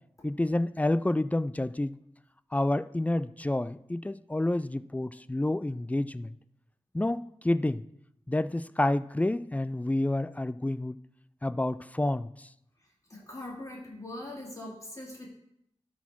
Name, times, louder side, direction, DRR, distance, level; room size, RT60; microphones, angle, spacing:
voice 1, 0.2-1.9 2.5-6.4 6.9-7.8 8.3-11.0 11.4-12.5, left 1 dB, 15° left, 16 dB, 0.3 m, -29 dB
voice 2, 13.1-15.3, left 1 dB, 30° left, -2 dB, 2.5 m, -41 dB
12.5 x 4.3 x 4.5 m, 0.77 s
cardioid pair, 55°, 11 cm